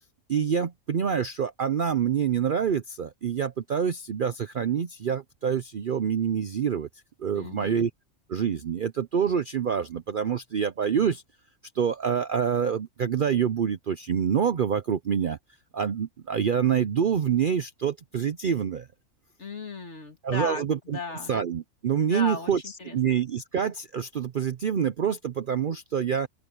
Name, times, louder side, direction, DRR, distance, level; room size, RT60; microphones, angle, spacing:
voice 1, 0.3-6.9 7.2-7.9 8.3-11.2 11.7-15.4 15.7-18.9 20.2-21.0 21.3-26.3, right 7 dB, 50° right, 0.6 m, -26 dB
voice 2, 7.3-7.9 19.4-21.3 22.0-23.0, left 3 dB, 55° left, 3.0 m, -36 dB
open air
omnidirectional pair, 1.4 m